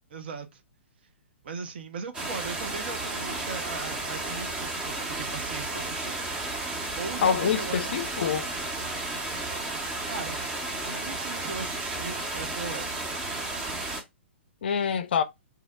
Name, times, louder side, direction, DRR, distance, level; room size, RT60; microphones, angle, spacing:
voice 1, 0.1-0.6 1.4-6.2 7.0-8.0 10.1-10.4 10.8-13.0, right 5 dB, 55° right, 0.6 m, -38 dB
sound 1, 2.1-14.0, right 2 dB, 15° right, 0.6 m, -33 dB
voice 2, 7.2-8.5 14.6-15.2, left 7 dB, 55° left, 0.4 m, -26 dB
2.8 x 2.0 x 3.4 m
figure-of-eight pair, 115°, 7 cm